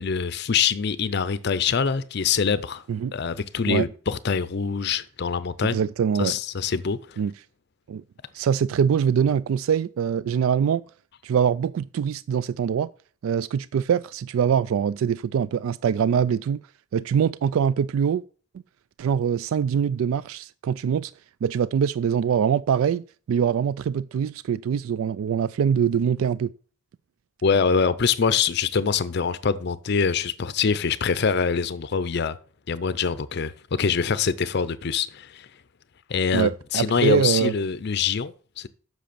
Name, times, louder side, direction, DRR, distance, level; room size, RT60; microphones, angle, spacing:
voice 1, 0.0-2.8 3.1-5.8 6.2-7.2 27.4-32.4 32.7-35.5 36.1-38.7, left 6 dB, 55° left, 0.5 m, -24 dB
voice 2, 5.7-6.4 7.2-7.3 7.9-8.0 8.3-10.8 11.2-12.9 13.2-16.6 16.9-18.2 19.0-21.1 21.4-26.5 36.3-37.5, right 7 dB, 85° right, 0.3 m, -23 dB
7.7 x 6.2 x 6.7 m
head